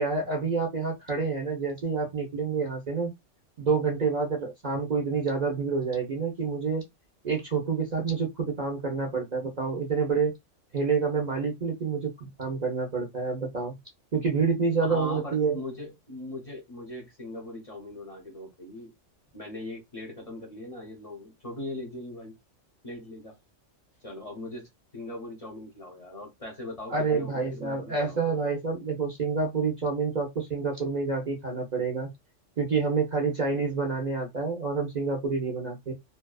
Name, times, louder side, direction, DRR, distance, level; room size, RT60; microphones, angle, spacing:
voice 1, 0.0-3.1 3.6-6.8 7.2-10.3 10.7-13.7 14.1-15.6 26.9-32.1 32.6-35.9, right 4 dB, 45° right, 0.6 m, -28 dB
voice 2, 14.8-18.9 19.3-22.4 22.8-23.4 24.0-28.3, left 1 dB, 35° left, 0.7 m, -40 dB
2.6 x 2.3 x 2.2 m
omnidirectional pair, 1.3 m